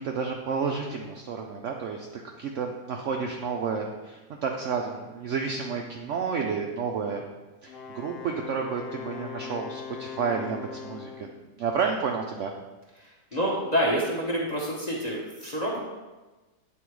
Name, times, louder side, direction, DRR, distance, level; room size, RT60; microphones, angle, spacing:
voice 1, 0.0-7.2 7.6-11.3 11.6-12.5, right 5 dB, 85° right, 2 dB, 0.6 m, -31 dB
Wind instrument woodwind instrument, 7.7-11.4, left 7 dB, 80° left, 1.3 m, -40 dB
voice 2, 13.3-15.8, equal, 35° left, -3 dB, 0.8 m, -27 dB
8.4 x 3.2 x 4.6 m, 1.2 s
omnidirectional pair, 1.8 m